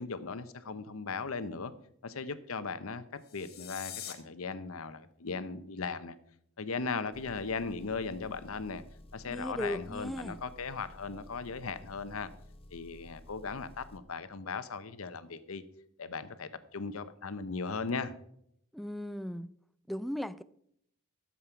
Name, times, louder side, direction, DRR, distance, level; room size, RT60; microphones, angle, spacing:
voice 1, 0.0-1.7 2.0-3.0 3.3-6.2 6.6-8.8 9.1-12.3 12.7-15.6 16.0-18.1, left 4 dB, 80° left, 0.8 m, -37 dB
sound 1, 3.2-4.1, left 10 dB, 50° left, 1.4 m, -43 dB
Engine, 7.1-14.0, left 1 dB, 25° left, 1.0 m, -53 dB
voice 2, 9.3-10.4 18.7-19.5 19.9-20.4, equal, ahead, 0.3 m, -37 dB
12.5 x 7.5 x 4.6 m
head